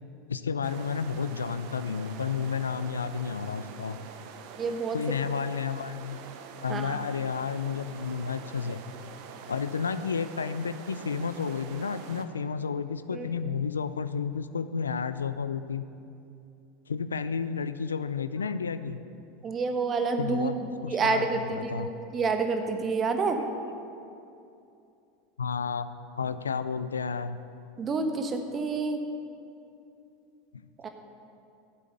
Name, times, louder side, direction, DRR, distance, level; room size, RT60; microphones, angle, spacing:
voice 1, 0.3-4.0 4.9-6.2 6.6-8.8 9.5-15.8 16.9-19.0 20.2-20.6 20.8-21.9 25.4-25.9 26.2-27.4, left 6 dB, 85° left, 13 dB, 0.4 m, -31 dB
sound 1, 0.6-12.2, right 7 dB, 60° right, 1.0 m, -45 dB
voice 2, 4.6-5.0 6.7-7.0 13.1-13.3 19.4-20.5 20.9-23.4 27.8-29.0 30.8-30.9, right 4 dB, 30° right, 5 dB, 1.4 m, -28 dB
13.0 x 8.4 x 6.8 m, 2.6 s
hypercardioid pair, 85°, 0 cm